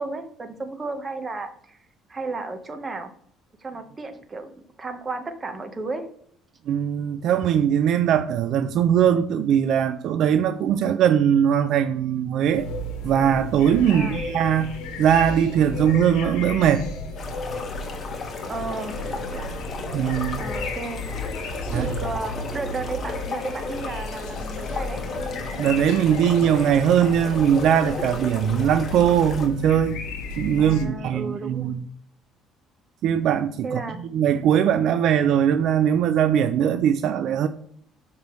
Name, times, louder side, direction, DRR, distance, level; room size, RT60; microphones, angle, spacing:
voice 1, 0.0-1.8 2.1-3.1 3.6-4.5 4.8-6.1 13.9-14.2 18.5-19.5 20.4-21.0 21.7-25.0 30.6-31.7 33.6-34.0, right 3 dB, 25° right, 1.0 m, -33 dB
voice 2, 6.7-12.7 13.0-16.9 19.9-20.4 21.7-21.9 25.6-30.0 30.4-31.8 33.0-33.8 34.1-37.5, right 9 dB, 65° right, 0.4 m, -20 dB
sound 1, 12.5-30.9, left 2 dB, 85° left, 1.1 m, -33 dB
sound 2, 17.2-29.5, left 3 dB, 35° left, 1.5 m, -35 dB
6.8 x 5.1 x 3.1 m
cardioid pair, 115°, 0 cm